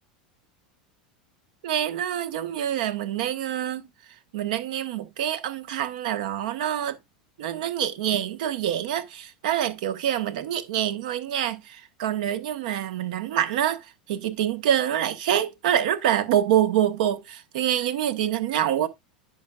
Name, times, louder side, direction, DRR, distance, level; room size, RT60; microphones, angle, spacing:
voice 1, 1.6-3.9 4.3-7.0 7.4-13.8 14.1-18.9, right 10 dB, 70° right, 1.2 m, -26 dB
10.5 x 6.4 x 2.4 m
hypercardioid pair, 90°, 4 cm